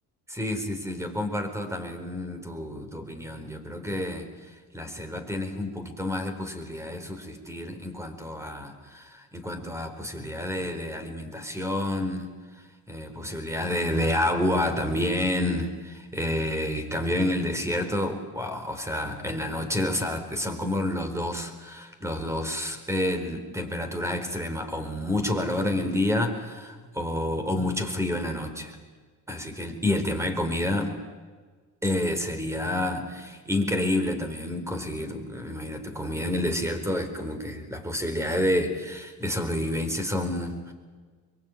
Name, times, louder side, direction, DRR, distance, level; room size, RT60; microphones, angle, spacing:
voice 1, 0.3-28.8 29.3-31.0 31.8-40.7, left 1 dB, 10° right, 8 dB, 4.3 m, -29 dB
24.0 x 23.5 x 9.1 m, 1.5 s
cardioid pair, 110°, 36 cm